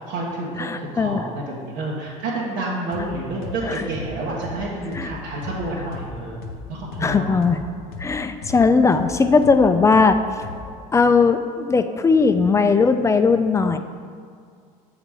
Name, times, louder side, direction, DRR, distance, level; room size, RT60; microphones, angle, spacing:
voice 1, 0.0-7.3, right 2 dB, 75° right, -6 dB, 1.2 m, -29 dB
voice 2, 0.6-1.2 3.7-3.8 5.0-5.1 7.0-7.6 8.0-10.2 10.9-13.8, left 4 dB, 15° left, 9 dB, 0.3 m, -18 dB
sound 1, 2.9-3.1 3.4-7.1 7.4-10.8, left 5 dB, 75° left, 0.6 m, -37 dB
6.6 x 4.0 x 4.8 m, 2.2 s
supercardioid pair, 95°, 18 cm